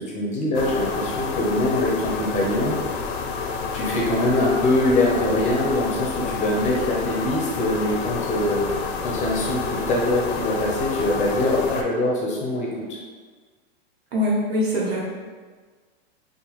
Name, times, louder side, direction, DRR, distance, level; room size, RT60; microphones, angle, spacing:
voice 1, 0.0-2.8 3.7-8.7 9.0-13.0, left 1 dB, 25° left, -3 dB, 0.6 m, -23 dB
sound 1, 0.5-11.8, left 5 dB, 80° left, 0.5 m, -29 dB
voice 2, 14.1-15.2, left 1 dB, 80° right, -4 dB, 1.1 m, -23 dB
2.8 x 2.2 x 2.9 m, 1.5 s
hypercardioid pair, 130°, 31 cm